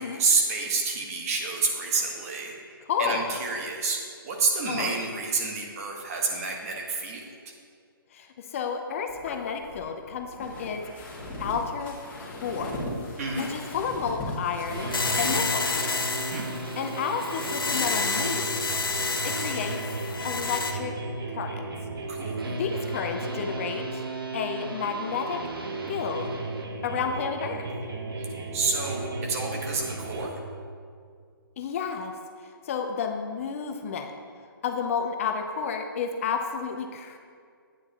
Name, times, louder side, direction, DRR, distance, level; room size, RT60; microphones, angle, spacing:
voice 1, 0.0-7.3 13.2-13.5 16.3-16.5 22.1-22.5 28.2-30.3, right 4 dB, 40° right, 0 dB, 1.4 m, -29 dB
voice 2, 2.9-3.3 4.7-4.9 8.1-11.1 11.4-12.9 13.3-14.9 15.2-15.7 16.8-18.6 19.2-19.8 20.2-20.9 21.3-21.6 22.5-24.0 24.3-25.4 25.9-26.3 26.8-27.7 31.6-32.1 32.7-34.1 34.6-37.2, left 6 dB, 35° left, 5 dB, 0.6 m, -31 dB
sound 1, 9.1-15.4, left 1 dB, 15° left, 1.9 m, -38 dB
sound 2, 14.7-30.3, right 3 dB, 75° right, 1.0 m, -34 dB
sound 3, 14.9-20.7, left 4 dB, 70° left, 0.9 m, -29 dB
9.5 x 9.0 x 2.9 m, 2.2 s
figure-of-eight pair, 140°, 12 cm